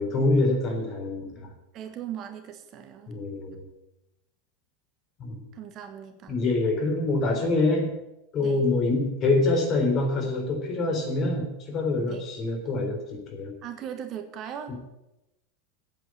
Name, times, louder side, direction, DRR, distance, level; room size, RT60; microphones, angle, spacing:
voice 1, 0.0-1.5 3.1-3.6 5.2-5.4 6.3-7.9 8.3-13.5 14.7-14.8, left 2 dB, 40° left, 3 dB, 3.8 m, -25 dB
voice 2, 1.7-3.1 5.5-6.4 8.4-8.7 12.1-12.3 13.6-14.7, right 9 dB, 45° right, 7 dB, 1.4 m, -38 dB
9.0 x 8.5 x 9.5 m, 0.94 s
figure-of-eight pair, 85°, 0 cm